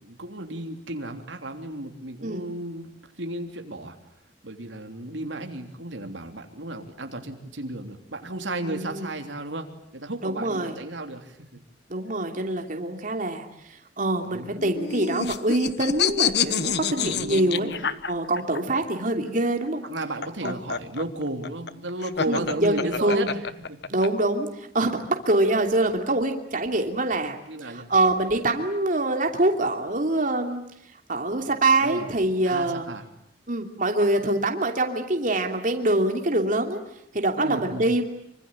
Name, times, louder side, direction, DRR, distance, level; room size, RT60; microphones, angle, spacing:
voice 1, 0.0-2.9 3.2-4.0 4.4-11.6 14.2-14.6 17.0-18.0 19.9-23.3 23.7-23.8 27.5-27.9 31.8-32.1 32.5-33.0 37.4-37.8, right 1 dB, 85° right, 5 dB, 3.3 m, -34 dB
voice 2, 8.6-9.1 10.2-10.8 11.9-17.7 18.1-19.8 20.4-20.6 22.3-23.3 23.9-30.6 31.1-32.9 33.5-36.8 37.1-38.0, right 2 dB, 45° right, 4 dB, 2.9 m, -25 dB
sound 1, 14.6-18.6 19.8-24.1, left 7 dB, 65° left, 1.2 m, -27 dB
26.0 x 25.5 x 9.0 m, 0.76 s
head